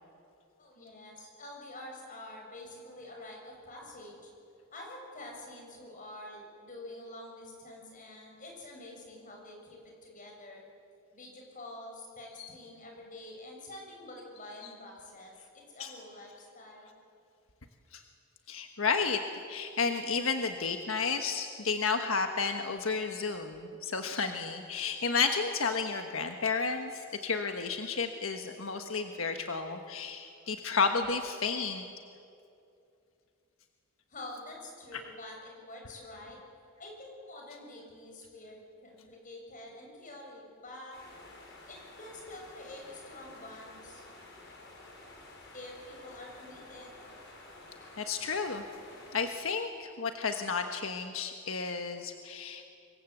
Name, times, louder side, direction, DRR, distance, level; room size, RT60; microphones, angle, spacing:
voice 1, 0.6-4.3 4.7-10.6 11.1-16.9 34.1-36.4 36.8-41.0 41.7-44.0 45.5-47.0, left 1 dB, 40° left, 0 dB, 7.0 m, -47 dB
voice 2, 18.5-19.2 19.5-31.9 34.9-35.0 48.0-48.6 49.1-52.7, left 5 dB, 85° left, 5 dB, 1.4 m, -32 dB
sound 1, 40.9-49.3, left 2 dB, 60° left, 5.6 m, -51 dB
26.5 x 23.0 x 8.1 m, 2.5 s
head